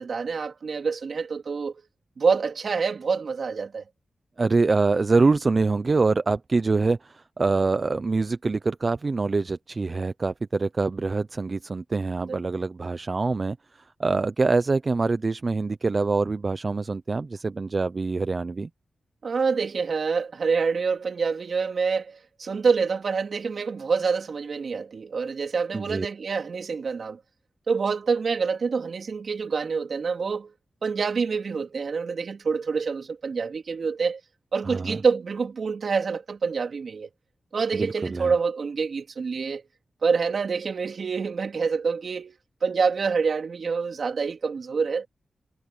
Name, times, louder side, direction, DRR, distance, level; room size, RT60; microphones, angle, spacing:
voice 1, 0.0-1.8 2.2-3.8 12.2-12.3 19.2-27.2 27.7-30.5 30.8-34.2 34.5-37.1 37.5-39.6 40.0-45.1, right 5 dB, 65° right, 3.2 m, -26 dB
voice 2, 4.4-18.7 25.7-26.1 34.7-35.0 37.7-38.3, right 3 dB, 45° right, 0.8 m, -25 dB
cardioid pair, 65°, 0 cm